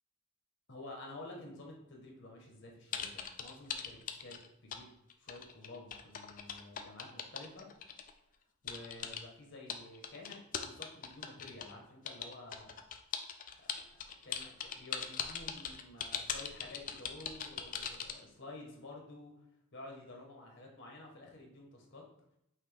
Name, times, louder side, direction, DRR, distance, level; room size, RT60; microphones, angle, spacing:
voice 1, 0.7-4.9 5.2-7.7 8.6-12.8 13.6-13.7 14.0-19.4 19.7-22.1, left 2 dB, 60° left, 0 dB, 1.1 m, -51 dB
sound 1, 2.9-4.8 5.1-8.1 8.7-9.2 9.7-11.7 12.1-18.2, left 8 dB, 40° left, 0.4 m, -40 dB
5.9 x 2.6 x 3.3 m, 0.78 s
head